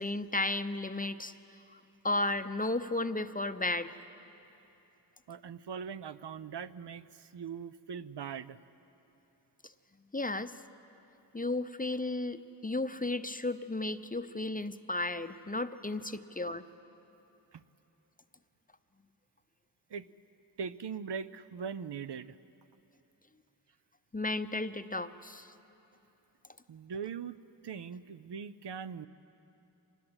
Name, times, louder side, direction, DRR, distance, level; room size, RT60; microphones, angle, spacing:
voice 1, 0.0-1.3 1.7-4.0 10.1-10.5 11.3-16.6 24.1-25.5, left 2 dB, 20° left, 10 dB, 0.6 m, -34 dB
voice 2, 5.3-8.6 17.5-17.6 19.9-20.1 20.6-22.4 26.7-29.1, right 6 dB, 70° right, 13 dB, 0.6 m, -41 dB
25.0 x 20.0 x 8.0 m, 2.9 s
wide cardioid pair, 70°, 43 cm